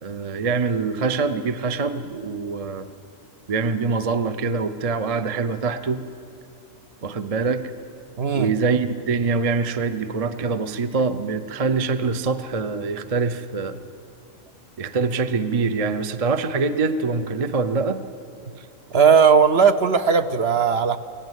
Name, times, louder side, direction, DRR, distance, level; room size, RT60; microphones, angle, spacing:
voice 1, 0.0-2.9 3.5-6.0 7.0-7.7 8.3-13.8 14.8-18.0 18.6-18.7, right 4 dB, 35° right, 11 dB, 0.7 m, -24 dB
voice 2, 8.2-8.5 18.9-21.0, right 6 dB, 55° right, 9 dB, 1.0 m, -17 dB
24.5 x 17.5 x 8.2 m, 2.7 s
omnidirectional pair, 1.4 m